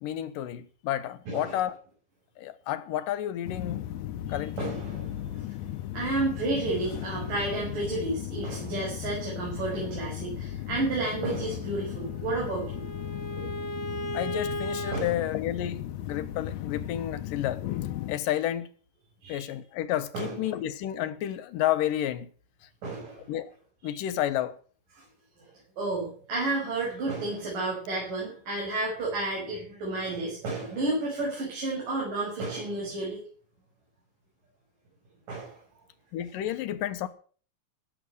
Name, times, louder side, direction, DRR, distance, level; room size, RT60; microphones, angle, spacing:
voice 1, 0.0-1.7 2.4-3.8 4.3-4.7 14.1-17.6 18.1-18.7 19.3-22.3 23.3-23.5 23.8-24.5 36.1-37.1, left 12 dB, 90° left, 2.7 m, -31 dB
sound 1, 3.4-18.2, left 12 dB, 75° left, 2.0 m, -36 dB
voice 2, 4.3-5.2 5.9-12.8 14.9-15.2 19.2-19.4 20.1-20.3 22.8-23.2 23.8-23.9 25.8-33.2 35.3-35.6, right 2 dB, 80° right, 7.9 m, -31 dB
Bowed string instrument, 11.9-15.0, right 1 dB, 25° left, 1.5 m, -36 dB
16.5 x 7.4 x 7.8 m
omnidirectional pair, 3.8 m